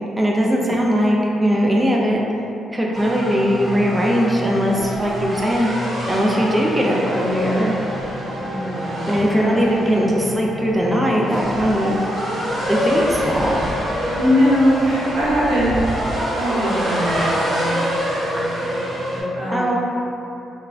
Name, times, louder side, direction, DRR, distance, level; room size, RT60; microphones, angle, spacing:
voice 1, 0.2-2.2 2.7-7.7 9.1-12.0 12.7-13.6 19.5-19.8, equal, 10° right, -3 dB, 0.3 m, -20 dB
sound 1, 2.9-19.2, equal, 45° right, 0.9 m, -25 dB
voice 2, 8.4-9.6 14.2-15.9 16.3-17.8 18.1-19.7, equal, 85° right, -8 dB, 0.8 m, -22 dB
3.1 x 2.2 x 2.4 m, 2.8 s
cardioid pair, 85°, 0 cm